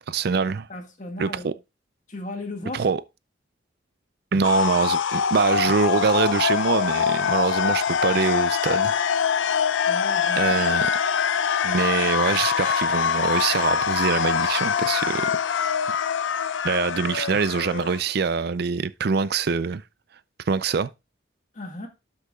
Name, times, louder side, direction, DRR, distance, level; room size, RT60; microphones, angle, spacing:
voice 1, 0.0-0.7 1.2-1.5 2.7-3.0 4.3-8.9 10.4-10.9 11.6-15.7 16.6-19.8 20.5-20.9, right 5 dB, 55° right, 0.4 m, -24 dB
voice 2, 0.7-1.5 2.1-2.9 9.8-10.4 21.5-21.9, left 2 dB, 40° left, 1.9 m, -35 dB
sound 1, 4.4-18.0, left 7 dB, 75° left, 0.5 m, -24 dB
12.5 x 6.6 x 2.3 m
head